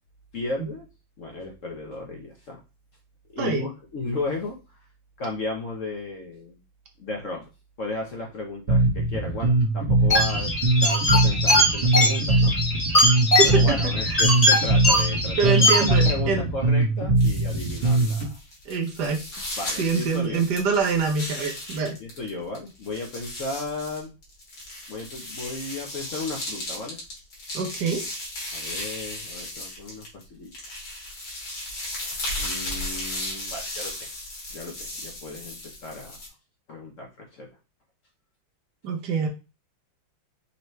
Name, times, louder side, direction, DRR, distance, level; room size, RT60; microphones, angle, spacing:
voice 1, 0.3-0.8 1.2-2.6 3.3-4.6 5.2-6.6 7.0-7.5 7.8-10.5 10.8-12.6 13.4-18.4 19.6-20.5 22.0-24.1 24.9-27.0 28.5-30.5 32.0-34.1 34.5-36.2 36.7-37.5, left 2 dB, 55° left, 0 dB, 1.0 m, -34 dB
Bass guitar, 8.7-18.3, right 2 dB, 40° right, 1.3 m, -21 dB
sound 1, 10.1-16.1, left 1 dB, 20° left, 1.4 m, -21 dB
voice 2, 13.3-14.2 15.4-16.4 18.7-19.2 19.8-22.0 27.5-28.0 38.8-39.3, right 5 dB, 65° right, 3 dB, 1.4 m, -25 dB
sound 2, 17.2-22.3 22.5-30.2 30.5-36.3, left 1 dB, 85° left, 2.7 m, -35 dB
5.6 x 3.0 x 3.2 m, 0.30 s
omnidirectional pair, 2.1 m